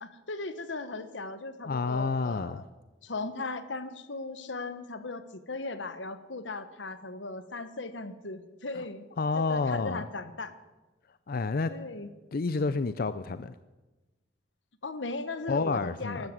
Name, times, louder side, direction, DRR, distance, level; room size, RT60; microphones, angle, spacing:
voice 1, 0.0-2.6 3.0-9.0 9.3-10.5 11.7-12.1 14.8-16.3, left 3 dB, 85° left, 11 dB, 1.2 m, -37 dB
voice 2, 1.6-2.6 8.8-8.9 9.2-10.0 11.3-11.7 12.3-13.5 15.5-16.3, left 4 dB, 55° left, 13 dB, 0.5 m, -29 dB
13.0 x 12.5 x 7.9 m, 1.1 s
head